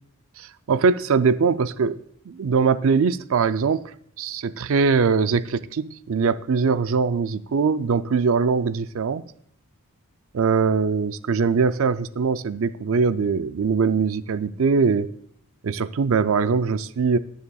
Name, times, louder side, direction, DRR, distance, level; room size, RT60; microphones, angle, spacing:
voice 1, 0.4-2.0 2.3-3.8 4.2-9.2 10.3-15.1 15.6-17.2, right 5 dB, 60° right, 0.4 m, -22 dB
21.0 x 7.1 x 2.3 m
head